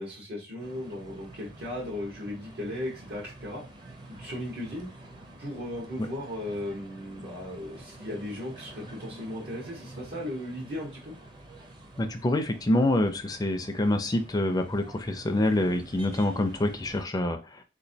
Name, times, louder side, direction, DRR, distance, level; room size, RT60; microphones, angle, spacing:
voice 1, 0.0-3.6 4.1-4.9 5.4-11.1, left 1 dB, 65° right, -4 dB, 1.2 m, -36 dB
sound 1, 0.6-17.0, right 1 dB, 25° right, 0.7 m, -48 dB
voice 2, 12.0-17.6, left 1 dB, 20° left, 7 dB, 0.4 m, -26 dB
3.6 x 2.9 x 2.7 m, 0.28 s
head